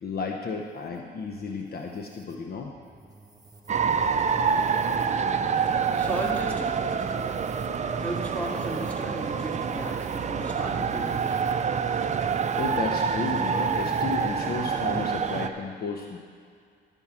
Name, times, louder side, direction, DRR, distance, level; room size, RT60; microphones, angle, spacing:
voice 1, 0.0-2.7 7.6-8.0 12.6-16.2, left 4 dB, 50° left, 2 dB, 0.9 m, -33 dB
sound 1, 0.6-14.5, right 2 dB, 20° right, 1.3 m, -51 dB
sound 2, 3.7-15.5, right 6 dB, 35° right, 0.5 m, -27 dB
voice 2, 5.9-6.7 7.9-11.3, right 1 dB, 5° left, -2 dB, 2.1 m, -35 dB
12.0 x 5.5 x 7.3 m, 2.2 s
cardioid pair, 90°, 20 cm